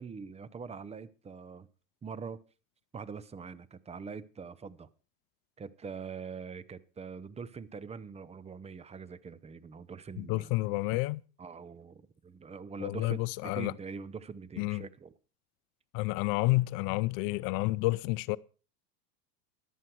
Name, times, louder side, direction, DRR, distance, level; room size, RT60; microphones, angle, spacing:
voice 1, 0.0-1.7 2.0-2.4 2.9-4.9 5.6-10.5 11.4-15.1, right 5 dB, 15° right, 0.7 m, -43 dB
voice 2, 10.2-11.2 12.8-13.7 14.6-14.8 15.9-18.4, left 21 dB, 45° left, 0.6 m, -30 dB
14.0 x 11.0 x 4.6 m
supercardioid pair, 115°, 48 cm